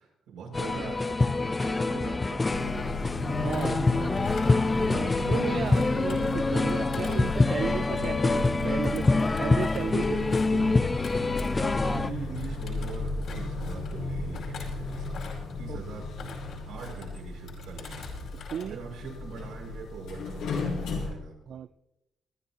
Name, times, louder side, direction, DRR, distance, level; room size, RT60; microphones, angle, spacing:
voice 1, 0.0-2.8 3.6-4.6 10.0-10.4 11.6-16.1 16.6-21.6, right 5 dB, 85° right, -3 dB, 6.4 m, -42 dB
sound 1, 0.5-12.1, left 3 dB, 25° left, 0.5 m, -26 dB
sound 2, 2.5-21.1, left 2 dB, 90° left, 4.9 m, -35 dB
Thump thud, 3.4-5.2 5.6-12.0 12.3-13.9 14.3-15.6 16.0-17.1 17.5-18.7 19.0-19.3, left 4 dB, 65° left, 4.8 m, -45 dB
voice 2, 3.4-3.8 4.9-10.1 10.5-10.6 15.7-15.8 18.3-18.8 21.5-21.7, right 8 dB, 65° right, 13 dB, 0.4 m, -34 dB
24.0 x 11.0 x 2.9 m, 0.90 s
cardioid pair, 90°, 0 cm